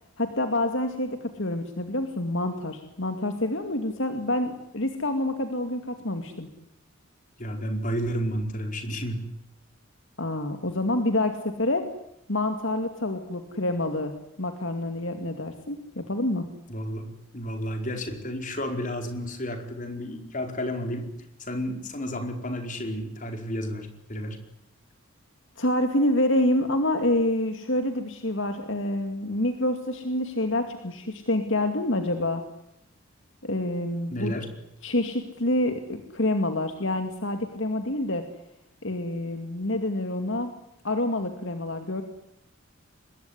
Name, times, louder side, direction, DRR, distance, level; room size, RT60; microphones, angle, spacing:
voice 1, 0.2-6.5 10.2-11.9 12.3-14.1 14.4-16.5 25.6-32.4 33.4-34.3 34.8-38.2 38.8-40.5 40.8-42.0, left 1 dB, 60° left, 7 dB, 2.4 m, -27 dB
voice 2, 7.4-9.2 16.7-17.1 17.3-21.1 21.4-24.4 34.1-34.5, equal, 40° left, 5 dB, 4.7 m, -31 dB
25.5 x 21.5 x 9.8 m, 0.80 s
head